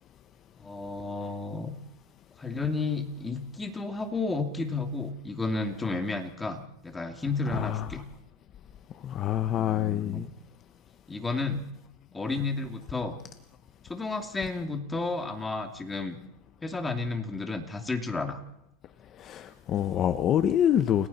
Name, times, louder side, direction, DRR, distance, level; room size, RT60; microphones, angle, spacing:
voice 1, 0.6-1.7 2.4-8.0 9.5-10.3 11.1-11.7 12.1-13.2 13.8-16.2 16.6-18.4, left 3 dB, 10° left, 5 dB, 2.7 m, -32 dB
voice 2, 7.5-7.9 9.0-10.3 19.2-21.1, left 10 dB, 25° left, 10 dB, 1.0 m, -26 dB
30.0 x 21.0 x 4.3 m, 0.80 s
supercardioid pair, 160°, 0 cm